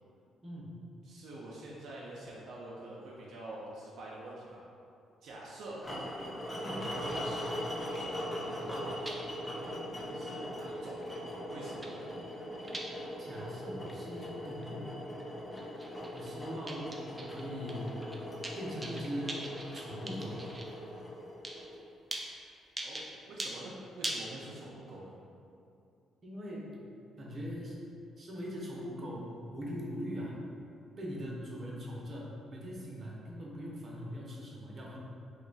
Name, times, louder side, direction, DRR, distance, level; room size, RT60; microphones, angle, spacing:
voice 1, 0.4-0.7 6.6-6.8 13.2-14.9 16.1-17.9 18.5-19.4 19.7-20.4 26.2-26.8 27.2-27.8 28.2-30.4 31.0-35.0, equal, 40° right, -4 dB, 0.7 m, -41 dB
voice 2, 1.0-4.6 5.2-5.8 6.7-7.5 7.9-9.0 9.9-11.0 11.5-12.0 22.8-25.2, right 1 dB, 75° right, -5 dB, 0.4 m, -46 dB
sound 1, 5.8-21.9, equal, 25° left, 0.7 m, -40 dB
sound 2, 7.1-7.2 7.5-7.6 7.8-9.2 9.5-9.8 10.1-10.2 10.7-11.3 11.6-12.8 13.3-13.4 13.8-14.7 14.9-15.2 15.5-16.3 16.7-17.4 17.7-20.7 21.4-21.7 22.1-22.2 22.8-23.1 23.4-23.5 24.0-24.3, right 1 dB, 15° right, 0.4 m, -42 dB
2.8 x 2.3 x 3.9 m, 2.5 s
cardioid pair, 90°, 0 cm